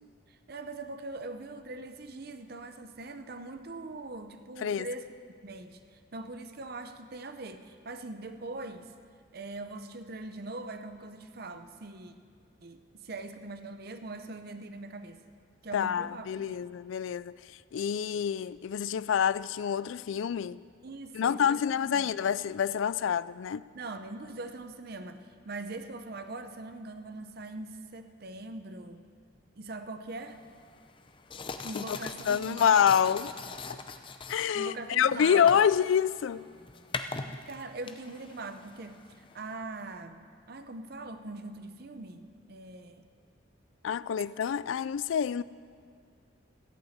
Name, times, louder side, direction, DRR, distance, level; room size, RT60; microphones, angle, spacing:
voice 1, 0.3-5.1 5.4-8.9 9.3-12.1 12.6-15.2 15.6-16.6 20.8-22.1 23.7-29.0 29.6-30.4 31.6-33.1 33.4-33.5 34.5-35.5 37.3-43.1, right 2 dB, 50° right, 0.7 m, -42 dB
voice 2, 15.7-17.4 17.7-20.6 21.1-23.6 31.7-32.0 32.3-33.3 34.3-36.5 43.8-45.4, left 8 dB, 75° left, 0.3 m, -27 dB
sound 1, 30.3-39.5, left 4 dB, 25° left, 0.5 m, -42 dB
14.5 x 8.7 x 7.9 m
head